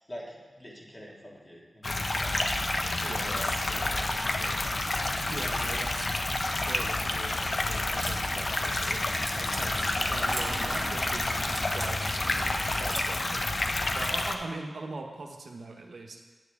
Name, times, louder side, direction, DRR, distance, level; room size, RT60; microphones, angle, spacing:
voice 1, 0.1-2.5 3.0-4.8, equal, 20° left, -3 dB, 1.7 m, -45 dB
sound 1, 1.8-14.3, left 2 dB, 45° left, 0.6 m, -29 dB
voice 2, 3.0-4.0 5.3-6.1 6.5-11.3 11.7-12.0 12.7-13.6 13.9-16.2, right 3 dB, 75° right, 2 dB, 0.8 m, -41 dB
sound 2, 8.0-8.2 9.3-9.7 10.3-10.5 11.5-11.9 12.9-13.1, right 2 dB, 25° right, 1.2 m, -38 dB
sound 3, 9.9-14.1, right 3 dB, 50° right, 0.4 m, -43 dB
9.4 x 7.2 x 3.5 m, 1.3 s
wide cardioid pair, 85°, 0 cm